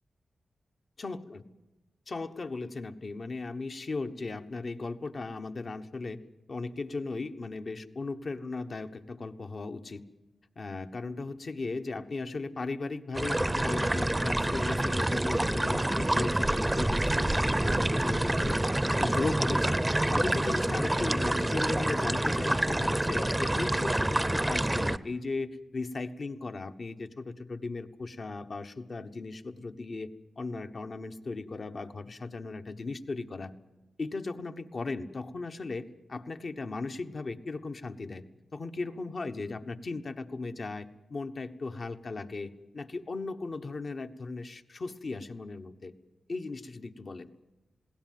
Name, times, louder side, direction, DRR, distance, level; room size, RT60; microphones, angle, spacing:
voice 1, 1.0-1.4 2.1-6.2 6.5-10.0 10.6-18.6 19.0-30.1 30.4-33.5 34.0-38.2 38.5-45.9 46.3-47.3, left 3 dB, 50° left, 7 dB, 1.2 m, -37 dB
sound 1, 13.1-25.0, right 1 dB, 15° right, 0.7 m, -27 dB
21.0 x 17.0 x 9.3 m, 1.0 s
cardioid pair, 75°, 0 cm